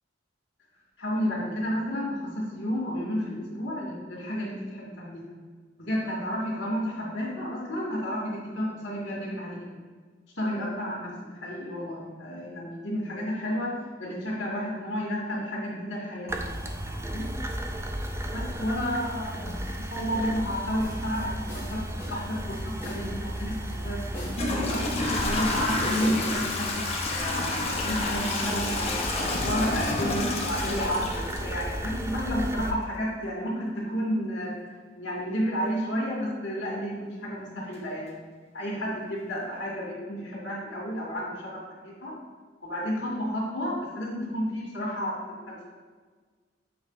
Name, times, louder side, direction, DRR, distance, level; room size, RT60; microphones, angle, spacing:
voice 1, 1.0-5.2 5.8-9.8 10.4-17.3 18.3-19.5 19.9-24.8 25.3-26.8 27.1-29.0 29.4-34.6 35.0-38.2 38.5-42.1 42.6-45.6, equal, 85° left, -9 dB, 1.9 m, -31 dB
sound 1, 16.3-32.7, equal, 15° right, 0.5 m, -34 dB
sound 2, 20.8-26.4, equal, 15° left, 1.7 m, -40 dB
Toilet flush / Trickle dribble, 23.5-23.6 24.3-32.1, left 2 dB, 35° left, 1.0 m, -30 dB
7.8 x 3.9 x 4.0 m, 1.5 s
head